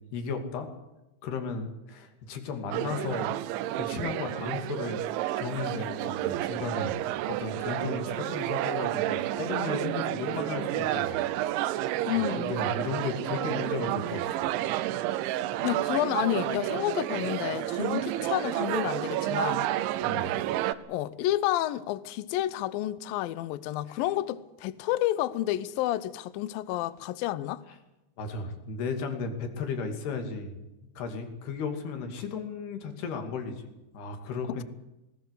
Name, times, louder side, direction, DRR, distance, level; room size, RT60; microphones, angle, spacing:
voice 1, 0.1-0.7 1.2-3.4 3.7-5.0 5.4-11.2 11.6-14.5 14.9-15.1 20.0-20.4 23.9-24.0 27.7-27.8 28.2-30.6 31.0-33.7 33.9-34.6, left 5 dB, 60° left, 4.4 m, -35 dB
sound 1, 2.7-20.8, right 14 dB, 80° right, 3.2 m, -30 dB
voice 2, 12.1-12.6 15.6-19.7 20.9-27.6, left 14 dB, 80° left, 2.1 m, -30 dB
20.0 x 19.5 x 8.2 m
omnidirectional pair, 5.4 m